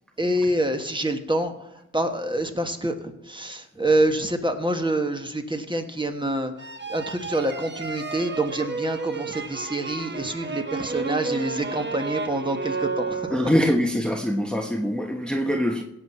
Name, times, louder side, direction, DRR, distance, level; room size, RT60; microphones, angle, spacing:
voice 1, 0.2-13.3, right 1 dB, 15° right, 6 dB, 1.4 m, -26 dB
sound 1, 6.6-13.8, right 4 dB, 35° right, 1.1 m, -32 dB
voice 2, 13.3-15.8, equal, 5° left, 2 dB, 1.0 m, -23 dB
17.0 x 6.2 x 5.5 m, 0.91 s
cardioid pair, 80°, 31 cm